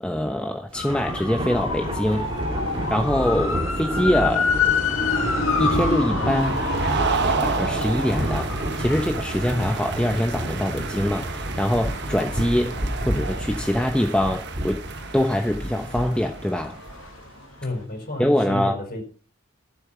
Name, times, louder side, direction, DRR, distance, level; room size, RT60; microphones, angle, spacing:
voice 1, 0.0-2.3 2.9-4.5 5.6-6.6 7.2-8.5 8.8-12.8 13.0-14.8 15.1-16.8 18.2-18.8, left 1 dB, 5° left, 1.0 m, -24 dB
sound 1, 0.7-14.5 14.9-17.5 17.7-17.8, left 5 dB, 75° left, 2.0 m, -29 dB
Thunder, 0.7-17.3, equal, 25° right, 2.6 m, -30 dB
sound 2, 1.4-17.1, right 5 dB, 55° right, 1.2 m, -33 dB
voice 2, 17.6-19.0, left 2 dB, 45° left, 5.0 m, -31 dB
13.5 x 7.6 x 5.9 m
head